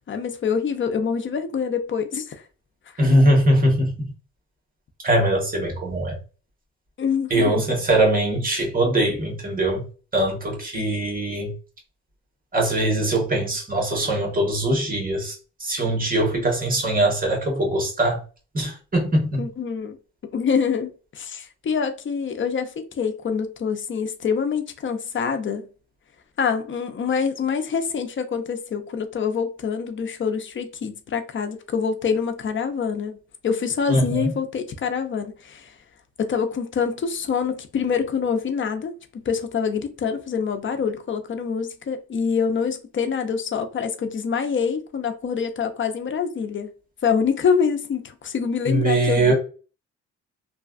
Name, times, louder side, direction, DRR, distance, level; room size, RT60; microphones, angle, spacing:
voice 1, 0.1-2.3 7.0-7.6 10.7-10.9 19.4-20.0 20.3-25.7 26.4-33.2 33.4-35.7 36.2-46.7 47.0-49.3, left 6 dB, 40° left, 0.6 m, -25 dB
voice 2, 3.0-3.9 5.0-6.2 7.3-9.8 10.1-11.5 12.5-15.3 15.6-18.2 18.5-19.4 33.9-34.3 48.7-49.3, right 1 dB, 30° right, 1.5 m, -21 dB
3.1 x 2.3 x 2.5 m
cardioid pair, 90°, 30 cm